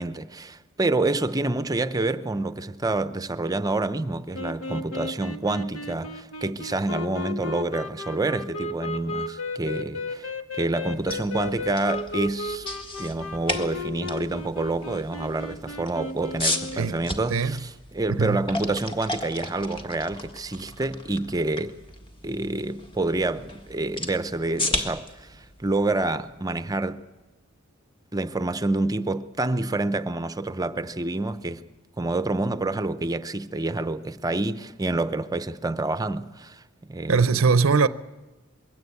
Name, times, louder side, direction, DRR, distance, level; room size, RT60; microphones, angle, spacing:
voice 1, 0.0-10.3 10.6-12.7 13.0-21.8 22.2-27.0 28.1-31.6 32.0-36.6 36.9-37.3, right 2 dB, 15° right, 0.7 m, -28 dB
sound 1, 4.3-17.0, left 2 dB, 80° left, 1.4 m, -35 dB
sound 2, 10.9-26.8, left 2 dB, 25° left, 1.6 m, -35 dB
voice 2, 16.7-17.6 18.1-18.4 37.1-37.9, right 5 dB, 70° right, 0.6 m, -22 dB
22.0 x 17.5 x 8.5 m
head